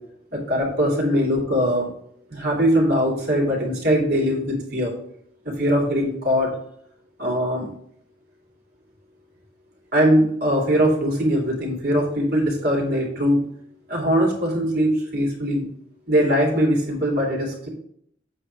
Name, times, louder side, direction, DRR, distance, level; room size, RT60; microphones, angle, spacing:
voice 1, 0.3-1.9 2.3-4.9 5.4-6.5 7.2-7.7 9.9-13.4 13.9-15.6 16.1-17.7, equal, 55° right, -1 dB, 3.1 m, -21 dB
8.1 x 4.6 x 4.8 m, 0.66 s
head